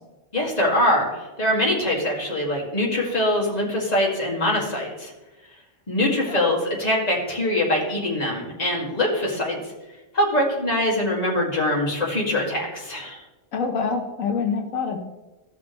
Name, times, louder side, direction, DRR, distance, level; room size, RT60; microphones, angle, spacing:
voice 1, 0.3-5.1 5.9-9.6 10.1-13.2, left 1 dB, 30° left, -3 dB, 2.3 m, -23 dB
voice 2, 13.5-15.0, left 5 dB, 85° left, 4 dB, 1.3 m, -26 dB
16.0 x 6.1 x 3.2 m, 1.1 s
omnidirectional pair, 1.4 m